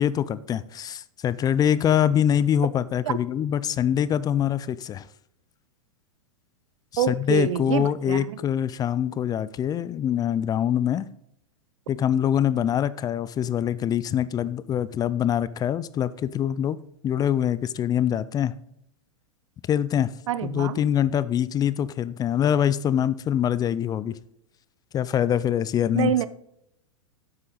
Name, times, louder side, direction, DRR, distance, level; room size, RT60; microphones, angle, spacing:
voice 1, 0.0-5.1 6.9-11.1 11.9-16.8 17.0-18.5 19.7-20.1 20.4-24.2 24.9-26.1, left 9 dB, 20° left, 0.4 m, -24 dB
voice 2, 7.0-8.4 20.3-20.8 25.9-26.3, right 10 dB, 65° right, 0.8 m, -26 dB
11.0 x 8.0 x 3.9 m
hypercardioid pair, 105°, 17 cm